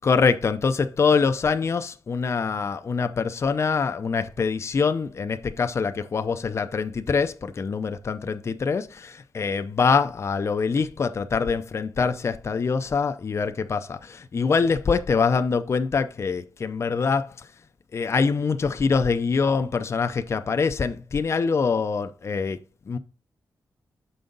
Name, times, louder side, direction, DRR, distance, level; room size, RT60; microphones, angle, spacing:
voice 1, 0.0-17.5 17.9-23.0, left 5 dB, 40° left, 0.5 m, -24 dB
6.8 x 5.3 x 3.9 m
wide cardioid pair, 110°, 7 cm